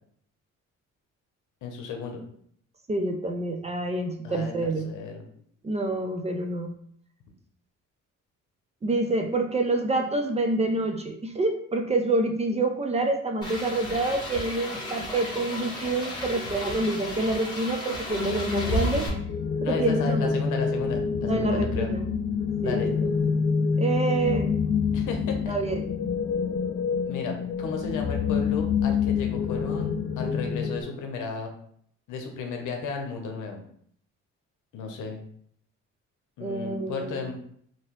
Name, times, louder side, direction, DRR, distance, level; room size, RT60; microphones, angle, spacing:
voice 1, 1.6-2.2 4.2-4.5 4.8-5.2 19.6-21.9 22.6-22.9 24.9-25.5 27.1-31.5 32.1-33.6 34.7-35.2 36.4-37.3, left 5 dB, 80° left, 3 dB, 0.8 m, -34 dB
voice 2, 2.9-4.9 5.6-6.7 8.8-19.1 19.6-20.3 21.3-22.0 22.6-22.9 23.8-24.5 25.5-25.9 36.4-37.3, right 2 dB, 20° right, 4 dB, 0.4 m, -27 dB
sound 1, 13.4-19.1, left 1 dB, 15° left, 1.2 m, -33 dB
sound 2, 18.1-30.8, left 6 dB, 40° left, 0.4 m, -27 dB
2.9 x 2.9 x 3.0 m, 0.64 s
cardioid pair, 90°, 30 cm